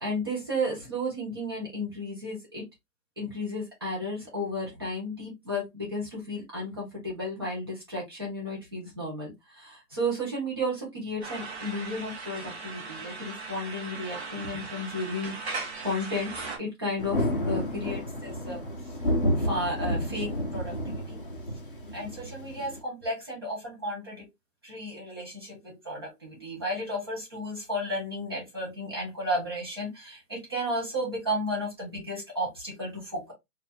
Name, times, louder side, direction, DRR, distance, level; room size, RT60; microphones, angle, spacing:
voice 1, 0.0-2.6 3.2-15.3 15.8-16.3 16.6-18.7 19.4-21.2 21.9-24.2 24.6-33.3, equal, 15° right, 1.0 m, -33 dB
sound 1, 11.2-16.6, right 4 dB, 40° right, 1.3 m, -38 dB
Thunder, 17.0-22.8, left 1 dB, 35° left, 0.7 m, -30 dB
4.4 x 2.7 x 2.8 m
hypercardioid pair, 170°, 49 cm